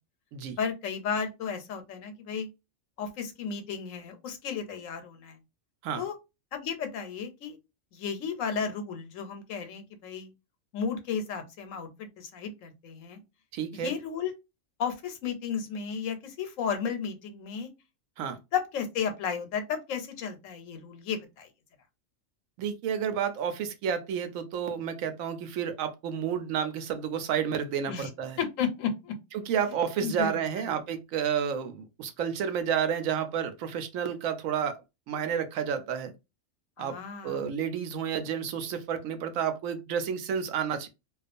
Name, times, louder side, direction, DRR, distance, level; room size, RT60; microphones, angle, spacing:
voice 1, 0.6-2.5 3.0-5.4 5.9-6.1 6.5-7.6 7.9-10.3 10.7-13.2 13.7-14.3 14.8-17.7 18.5-21.5 27.9-28.1 28.4-29.1 30.0-30.8 36.8-37.4, left 6 dB, 80° left, 1.0 m, -33 dB
voice 2, 13.5-13.9 18.2-18.4 22.6-28.4 29.3-34.8 35.1-36.1 36.8-37.0 37.2-40.9, right 8 dB, 85° right, 1.0 m, -30 dB
2.3 x 2.3 x 2.5 m
omnidirectional pair, 1.3 m